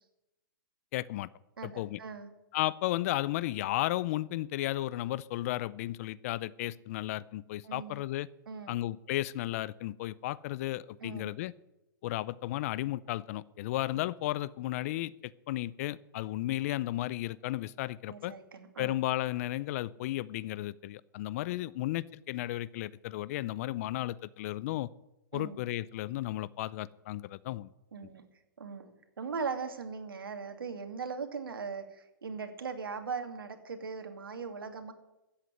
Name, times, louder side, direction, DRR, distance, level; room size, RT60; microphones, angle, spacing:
voice 1, 0.9-1.3 1.6-2.0 2.5-8.3 8.7-11.5 12.0-15.1 15.5-18.3 18.8-24.9 25.3-27.7, left 15 dB, 45° left, 21 dB, 0.5 m, -34 dB
voice 2, 1.6-2.3 7.6-8.0 8.5-8.7 11.0-11.3 13.9-14.0 18.1-18.9 25.3-25.6 27.9-28.3 28.6-34.9, right 5 dB, 85° right, 7 dB, 2.5 m, -39 dB
14.0 x 8.3 x 9.6 m, 0.94 s
hypercardioid pair, 140°, 12 cm